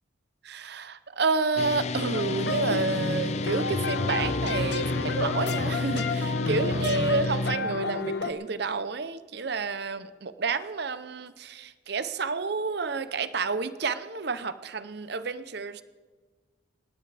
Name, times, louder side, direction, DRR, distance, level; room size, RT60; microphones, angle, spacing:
voice 1, 0.4-15.8, right 4 dB, 55° right, 13 dB, 0.7 m, -30 dB
sound 1, 1.6-7.6, left 3 dB, 35° left, 0.4 m, -31 dB
sound 2, 2.1-8.3, left 2 dB, 55° left, 0.9 m, -31 dB
19.5 x 16.5 x 3.4 m, 1.3 s
head